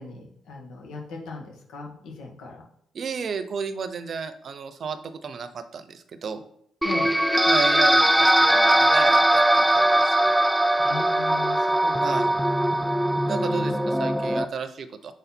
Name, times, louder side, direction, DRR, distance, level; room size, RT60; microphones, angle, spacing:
voice 1, 0.0-2.6 6.8-7.1 10.8-12.4 13.4-13.8, left 4 dB, 85° left, -1 dB, 1.8 m, -38 dB
voice 2, 2.9-6.4 7.5-10.2 12.0-12.3 13.3-15.1, right 5 dB, 50° right, 10 dB, 0.7 m, -33 dB
sound 1, 6.8-14.5, right 1 dB, 5° right, 0.4 m, -20 dB
6.4 x 4.0 x 4.3 m, 0.73 s
cardioid pair, 90°, 0 cm